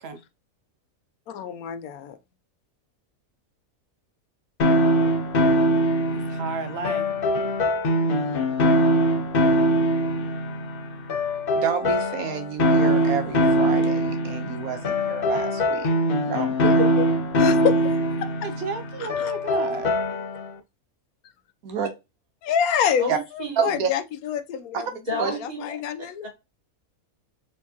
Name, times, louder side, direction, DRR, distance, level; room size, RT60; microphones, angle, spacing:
voice 1, 1.3-2.2 17.4-17.8 18.2-18.3 19.0-19.3 22.4-23.1 23.3-24.9 25.1-26.3, left 8 dB, 85° left, 1.1 m, -27 dB
sound 1, 4.6-20.5, equal, 50° left, 0.8 m, -22 dB
voice 2, 6.1-7.1 18.4-19.9, right 4 dB, 55° right, 0.9 m, -33 dB
voice 3, 11.5-15.9 16.2-16.6 21.6-21.9 23.1-23.2 23.6-23.9 25.2-25.3, right 6 dB, 80° right, 1.3 m, -29 dB
voice 4, 16.6-17.1 23.0-23.6 25.1-25.8 26.2-26.3, equal, 30° right, 2.2 m, -29 dB
4.5 x 3.5 x 2.8 m
omnidirectional pair, 1.5 m